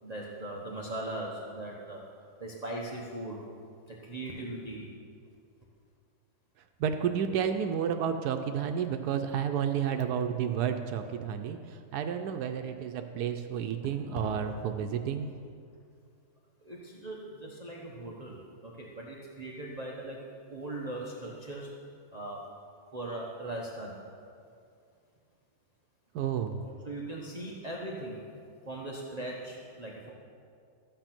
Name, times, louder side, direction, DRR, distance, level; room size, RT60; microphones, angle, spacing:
voice 1, 0.0-2.0 2.4-3.4 3.9-4.9 16.6-18.4 18.6-21.7 22.1-22.4 22.9-23.9 26.8-28.2 28.6-30.1, right 1 dB, 30° right, -4 dB, 1.1 m, -39 dB
voice 2, 6.8-15.3 26.1-26.6, right 8 dB, 80° right, 6 dB, 1.2 m, -31 dB
13.5 x 9.0 x 6.0 m, 2.4 s
omnidirectional pair, 1.7 m